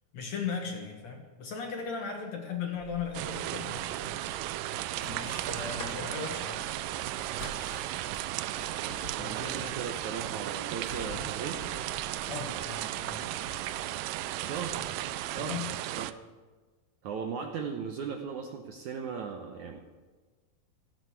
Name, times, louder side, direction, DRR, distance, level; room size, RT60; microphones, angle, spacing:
voice 1, 0.1-4.3 5.0-6.6 9.1-9.7 12.2-13.4 15.3-15.7, left 6 dB, 55° left, 2 dB, 2.3 m, -38 dB
sound 1, 2.7-15.4, left 1 dB, 30° left, 2.9 m, -49 dB
sound 2, 3.1-16.1, right 14 dB, 85° right, 1.9 m, -35 dB
voice 2, 9.1-11.6 14.4-15.6 16.0-16.2 17.0-19.8, right 6 dB, 70° right, 3 dB, 1.9 m, -38 dB
17.0 x 14.5 x 4.7 m, 1.3 s
omnidirectional pair, 4.4 m